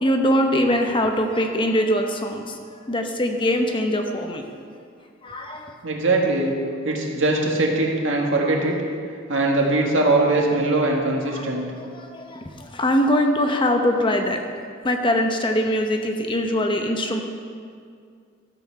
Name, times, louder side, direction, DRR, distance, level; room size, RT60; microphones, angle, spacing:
voice 1, 0.0-2.6 2.9-4.4 5.2-5.7 8.4-8.6 11.3-14.4 14.8-17.2, left 1 dB, 25° left, 4 dB, 0.8 m, -22 dB
voice 2, 5.8-6.5 6.8-8.7 9.3-11.7, right 2 dB, 70° right, 0 dB, 1.7 m, -21 dB
13.0 x 6.9 x 5.7 m, 2.2 s
head